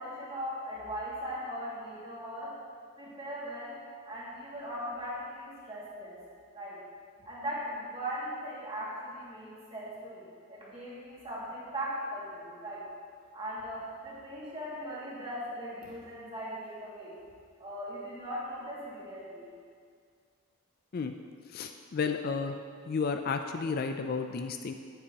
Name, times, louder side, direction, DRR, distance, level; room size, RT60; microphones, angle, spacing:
voice 1, 0.0-2.5 3.0-3.8 4.0-6.2 6.5-6.8 7.2-12.9 13.3-17.2 17.6-19.5, equal, 25° right, -7 dB, 2.2 m, -39 dB
voice 2, 21.5-22.5 22.9-24.7, left 5 dB, 45° left, 6 dB, 0.3 m, -32 dB
10.0 x 9.3 x 2.9 m, 2.1 s
head